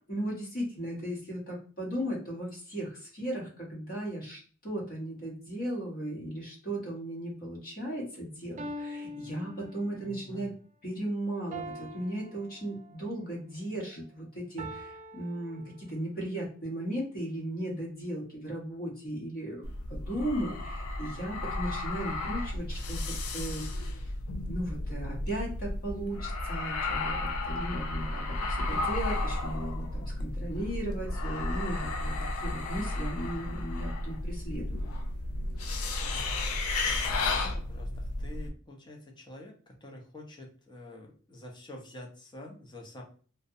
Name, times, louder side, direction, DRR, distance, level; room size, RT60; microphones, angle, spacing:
voice 1, 0.0-10.5 10.8-24.1 24.5-34.8, right 1 dB, 45° left, -3 dB, 0.8 m, -36 dB
sound 1, 8.6-10.2 11.5-13.1 14.6-16.2, equal, 35° right, 0.4 m, -43 dB
voice 2, 10.0-10.5 36.0-36.4 37.1-43.0, left 1 dB, 20° left, 0 dB, 0.6 m, -47 dB
sound 2, 19.6-38.5, left 2 dB, 90° left, 0.4 m, -33 dB
2.5 x 2.1 x 2.6 m, 0.41 s
head